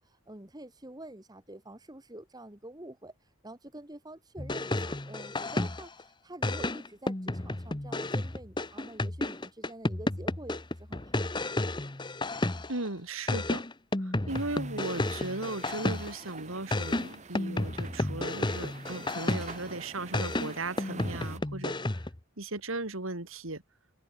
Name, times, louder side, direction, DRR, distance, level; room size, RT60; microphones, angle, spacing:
voice 1, 0.0-11.5, right 1 dB, 20° right, 1.6 m, -47 dB
sound 1, 4.4-6.0 6.4-12.9 13.3-16.3 16.7-19.7 20.1-22.2, left 2 dB, 20° left, 1.1 m, -32 dB
voice 2, 12.7-13.6 14.0-21.8 22.4-23.6, right 2 dB, 75° right, 3.2 m, -37 dB
sound 2, 14.3-21.4, right 4 dB, 35° right, 1.5 m, -47 dB
open air
head